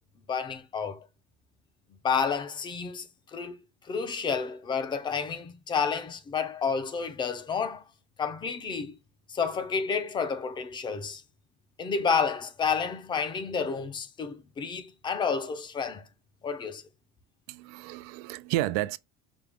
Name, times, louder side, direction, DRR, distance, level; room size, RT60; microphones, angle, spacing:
voice 1, 0.3-1.0 2.0-3.6 3.8-7.8 8.2-9.0 9.3-11.2 11.8-16.0 16.4-16.8, left 6 dB, 25° left, 0.6 m, -30 dB
voice 2, 17.5-19.0, right 16 dB, 85° right, 0.4 m, -31 dB
5.1 x 2.3 x 3.4 m
cardioid pair, 145°, 20 cm